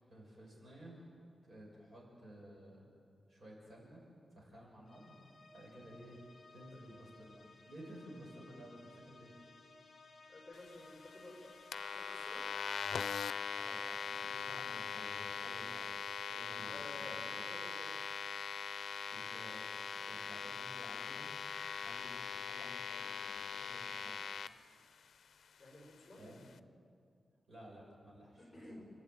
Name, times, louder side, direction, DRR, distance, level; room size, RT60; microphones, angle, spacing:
voice 1, 0.1-1.1 1.4-2.9 3.3-4.0 4.3-5.2 5.5-6.2 6.5-9.3 13.5-16.0 16.3-17.2 19.1-19.6 20.0-21.3 21.7-24.3 26.1-26.5 27.5-28.8, right 1 dB, 45° right, -3 dB, 6.4 m, -54 dB
sound 1, 4.9-13.4, left 3 dB, 40° left, 3.4 m, -60 dB
voice 2, 10.3-11.5 11.9-12.5 16.6-18.0 19.9-20.3 25.6-26.3 28.4-28.8, left 2 dB, 15° left, -1 dB, 5.4 m, -53 dB
sound 2, 11.7-24.5, left 6 dB, 85° left, 0.5 m, -41 dB
29.0 x 11.5 x 9.2 m, 2.4 s
wide cardioid pair, 170°, 0 cm